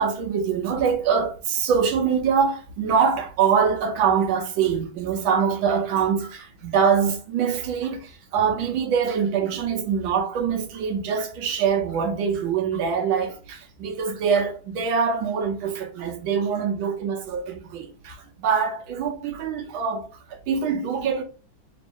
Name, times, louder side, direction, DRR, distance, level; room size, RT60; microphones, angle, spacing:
voice 1, 0.0-21.2, right 6 dB, 70° right, 1.5 m, -24 dB
3.5 x 3.1 x 3.4 m
omnidirectional pair, 2.3 m